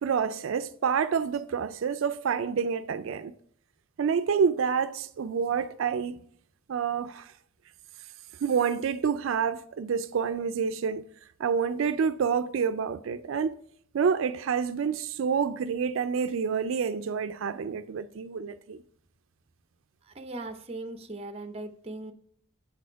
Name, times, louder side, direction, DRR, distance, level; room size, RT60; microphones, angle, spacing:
voice 1, 0.0-3.3 4.0-6.2 6.7-7.3 8.4-11.0 11.4-13.6 13.9-18.8, right 6 dB, 80° right, 0.4 m, -28 dB
voice 2, 20.1-22.1, right 2 dB, 30° right, 0.6 m, -39 dB
7.4 x 4.2 x 4.5 m
head